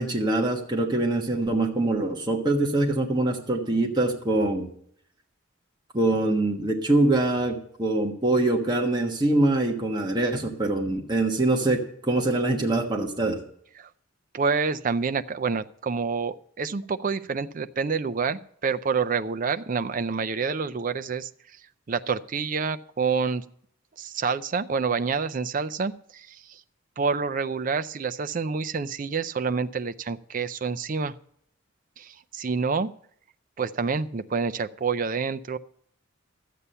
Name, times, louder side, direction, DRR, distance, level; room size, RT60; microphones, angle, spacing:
voice 1, 0.0-4.7 5.9-13.4, right 2 dB, 20° right, 0 dB, 1.3 m, -24 dB
voice 2, 14.3-21.3 21.9-23.4 24.0-26.4 27.0-31.1 32.0-32.9 33.6-35.6, right 5 dB, 40° right, 11 dB, 0.4 m, -28 dB
12.5 x 8.4 x 5.5 m, 0.65 s
head